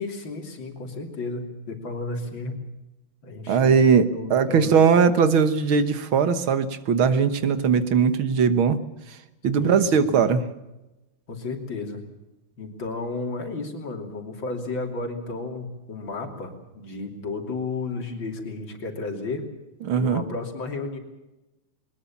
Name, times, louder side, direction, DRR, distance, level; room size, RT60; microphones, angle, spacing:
voice 1, 0.0-2.6 3.2-3.8 4.1-4.9 9.6-10.2 11.3-12.0 12.6-19.5 19.9-21.0, left 3 dB, 65° left, 4 dB, 3.7 m, -33 dB
voice 2, 3.5-8.8 9.4-10.4 19.8-20.2, right 6 dB, 80° right, 11 dB, 2.1 m, -20 dB
21.5 x 20.5 x 7.2 m, 0.99 s
omnidirectional pair, 2.2 m